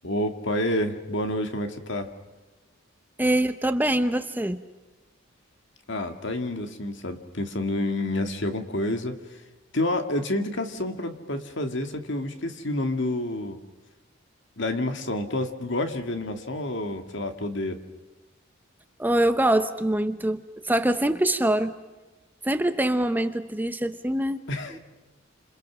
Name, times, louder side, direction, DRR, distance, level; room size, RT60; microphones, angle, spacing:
voice 1, 0.0-2.1 5.9-9.2 9.7-13.6 14.6-17.8 24.5-24.8, left 1 dB, 60° left, 6 dB, 2.2 m, -29 dB
voice 2, 3.2-4.6 19.0-21.7 22.4-24.4 24.7-24.8, right 1 dB, 10° right, 10 dB, 0.8 m, -24 dB
29.0 x 27.5 x 6.3 m, 1.2 s
head